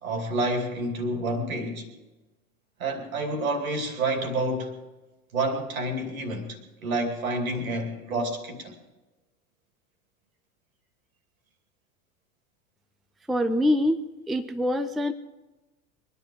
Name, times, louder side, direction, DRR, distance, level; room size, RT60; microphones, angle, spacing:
voice 1, 0.0-1.9 2.8-4.7 5.3-8.7, right 2 dB, 75° right, 2.7 m, -29 dB
voice 2, 13.3-14.0 14.3-15.1, left 1 dB, ahead, 0.4 m, -24 dB
23.0 x 10.5 x 5.5 m
figure-of-eight pair, 85°, 42 cm